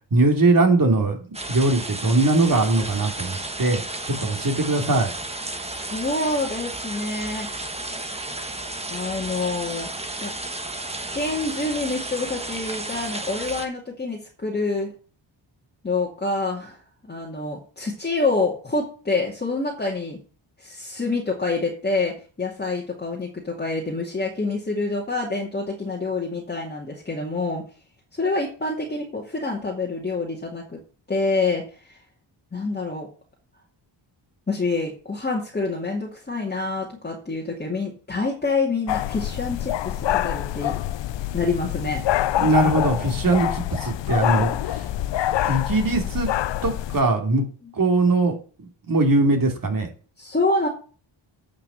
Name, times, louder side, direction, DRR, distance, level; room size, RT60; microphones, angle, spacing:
voice 1, 0.1-5.1 42.4-44.8 45.4-46.3 46.6-47.5 47.7-49.9, right 2 dB, 45° right, 3 dB, 3.0 m, -21 dB
sound 1, 1.3-13.7, right 2 dB, 15° right, 1.2 m, -33 dB
voice 2, 5.6-7.5 8.9-9.9 10.2-10.3 11.1-14.9 15.8-16.8 17.0-20.2 20.6-27.6 28.1-30.8 31.1-31.6 31.9-32.0 32.5-33.1 34.5-40.7 41.3-42.0 44.5-44.6 50.2-50.7, left 3 dB, 20° left, -3 dB, 2.3 m, -27 dB
sound 2, 38.9-47.0, left 13 dB, 65° left, 0.6 m, -26 dB
8.6 x 5.7 x 7.4 m, 0.38 s
wide cardioid pair, 140°, 47 cm